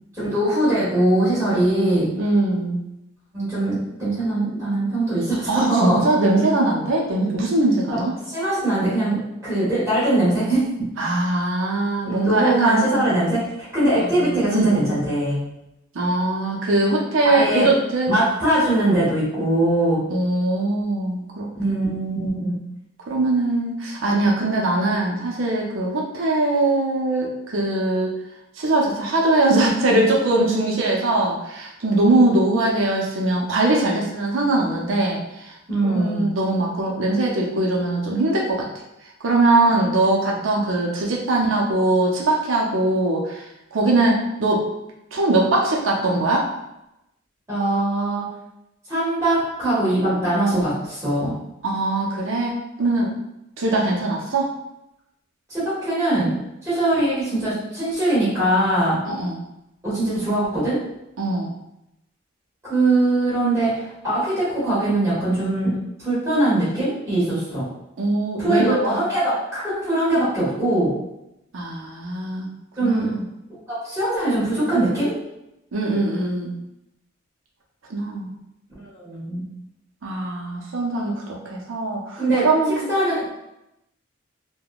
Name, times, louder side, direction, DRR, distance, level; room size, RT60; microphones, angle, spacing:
voice 1, 0.2-2.1 3.3-6.0 7.2-7.4 7.9-8.0 8.3-10.9 12.0-15.4 17.2-17.7 18.1-20.0 21.5-22.5 35.7-36.3 47.5-48.2 48.9-51.3 55.5-59.0 59.8-60.8 62.6-67.6 68.4-70.9 72.8-73.1 73.7-75.1 78.9-79.4 82.1-82.5 82.9-83.3, right 1 dB, 15° right, -12 dB, 1.4 m, -21 dB
voice 2, 2.2-2.8 5.5-8.1 11.0-13.0 14.0-14.8 15.9-18.1 20.1-21.5 23.1-28.2 28.6-35.6 35.9-38.7 39.2-44.7 45.1-46.5 51.6-53.1 53.6-54.5 59.1-59.4 61.2-61.5 68.0-69.0 71.5-72.5 72.8-73.3 75.7-76.5 77.9-78.3 80.0-82.8, right 2 dB, 75° right, -2 dB, 0.6 m, -21 dB
3.4 x 2.2 x 2.3 m, 0.87 s
head